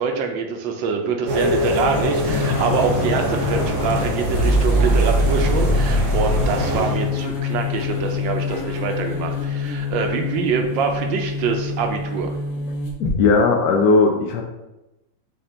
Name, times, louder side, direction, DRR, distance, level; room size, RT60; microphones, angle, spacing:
voice 1, 0.0-12.4, right 5 dB, 75° right, 4 dB, 1.3 m, -24 dB
sound 1, 1.3-7.2, equal, 55° right, 0.9 m, -24 dB
sound 2, 2.3-13.2, left 2 dB, 55° left, 1.4 m, -24 dB
voice 2, 13.2-14.4, left 3 dB, 75° left, 2 dB, 1.0 m, -16 dB
5.6 x 2.3 x 3.7 m, 0.96 s
omnidirectional pair, 2.1 m